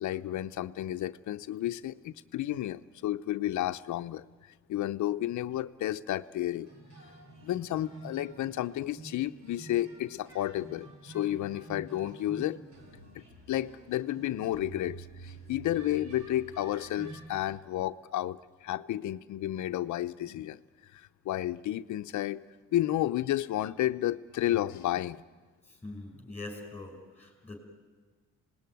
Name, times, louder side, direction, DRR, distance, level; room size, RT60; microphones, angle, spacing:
voice 1, 0.0-4.3 4.7-6.7 7.4-12.6 13.1-20.6 20.9-22.4 22.7-25.2, left 13 dB, 70° left, 12 dB, 0.7 m, -32 dB
sound 1, 6.6-17.5, right 3 dB, 60° right, 5.5 m, -49 dB
voice 2, 25.7-27.6, left 2 dB, 5° left, 2 dB, 5.5 m, -43 dB
26.0 x 19.5 x 9.3 m, 1.5 s
cardioid pair, 90°, 30 cm